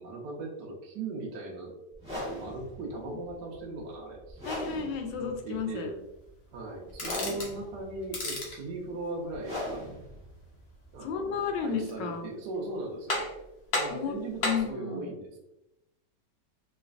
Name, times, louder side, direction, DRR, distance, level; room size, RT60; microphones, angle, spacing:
voice 1, 0.0-1.7 2.1-4.4 5.2-5.9 6.5-9.8 10.9-13.2 13.7-15.4, right 2 dB, 70° right, -2 dB, 1.2 m, -38 dB
sound 1, 1.9-11.8, left 1 dB, 5° right, 1.1 m, -40 dB
voice 2, 4.4-5.9 11.0-12.3 13.9-14.1 14.4-15.1, left 6 dB, 80° left, 4 dB, 1.2 m, -33 dB
sound 2, 6.9-7.6 8.0-8.6 11.6-12.2 12.5-12.6 13.1-13.4 13.7-14.7, left 2 dB, 50° left, 0.8 m, -33 dB
3.1 x 3.1 x 2.4 m, 0.92 s
omnidirectional pair, 1.9 m